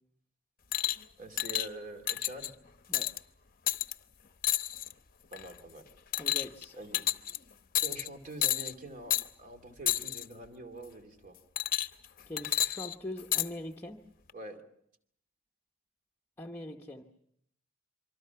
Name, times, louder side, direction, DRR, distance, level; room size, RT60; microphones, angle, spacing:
sound 1, 0.7-1.0 1.4-1.7 2.1-2.5 2.9-3.2 3.7-3.9 4.4-4.9 5.3-5.6 6.1-6.6 6.9-7.4 7.7-8.1 8.4-8.7 9.1-9.3 9.9-10.2 11.6-12.1 12.4-13.5 14.3-14.4, left 11 dB, 45° left, 0.8 m, -30 dB
voice 1, 1.2-2.5 5.3-5.9 6.7-7.1 7.8-11.4 14.3-14.6, right 1 dB, 40° right, 6 dB, 2.5 m, -45 dB
voice 2, 6.2-6.8 12.3-14.0 16.4-17.0, left 1 dB, 10° left, 1 dB, 1.0 m, -42 dB
26.5 x 24.5 x 5.7 m, 0.69 s
head